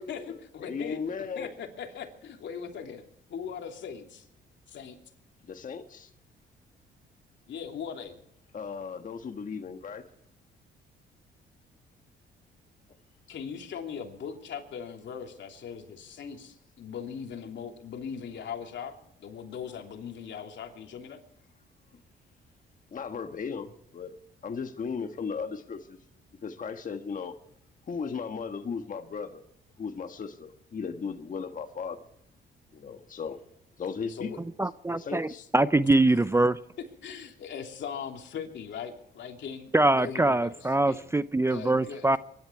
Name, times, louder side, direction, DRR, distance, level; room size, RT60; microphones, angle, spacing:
voice 1, 0.0-3.0 3.3-4.3 4.7-5.0 7.5-8.2 13.3-21.2 34.1-34.4 35.3-35.5 37.0-41.0 41.4-42.2, left 7 dB, 65° left, 3.0 m, -40 dB
voice 2, 0.6-1.5 5.5-6.1 8.5-10.0 22.9-24.1 24.4-26.0 26.4-27.3 27.9-29.4 29.8-32.0 32.7-33.4 33.8-34.3 34.9-35.4, left 5 dB, 40° left, 1.4 m, -36 dB
voice 3, 34.6-35.3 35.5-36.6 39.7-42.2, right 2 dB, 15° right, 0.5 m, -23 dB
24.0 x 12.0 x 4.6 m
cardioid pair, 90°, 20 cm